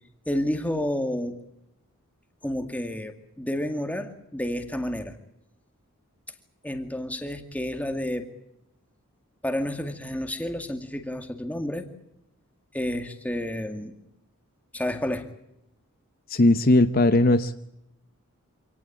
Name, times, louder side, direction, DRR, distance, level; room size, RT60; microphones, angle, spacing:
voice 1, 0.3-1.4 2.4-5.2 6.6-8.3 9.4-11.9 12.7-14.0 14.7-15.3, left 1 dB, 5° left, 7 dB, 2.2 m, -30 dB
voice 2, 16.3-17.5, left 2 dB, 40° left, 10 dB, 0.8 m, -18 dB
27.0 x 18.0 x 8.6 m, 0.82 s
head